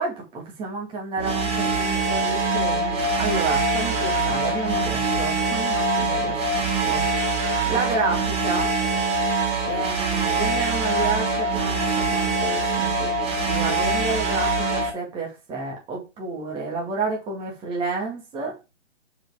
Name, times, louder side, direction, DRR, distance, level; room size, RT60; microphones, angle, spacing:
voice 1, 0.0-7.0 7.7-8.7 9.6-13.1 13.4-18.6, right 3 dB, 15° right, 2.2 m, -30 dB
sound 1, 1.2-14.9, right 3 dB, 30° right, 2.9 m, -23 dB
6.2 x 5.0 x 4.9 m
hypercardioid pair, 150°, 35 cm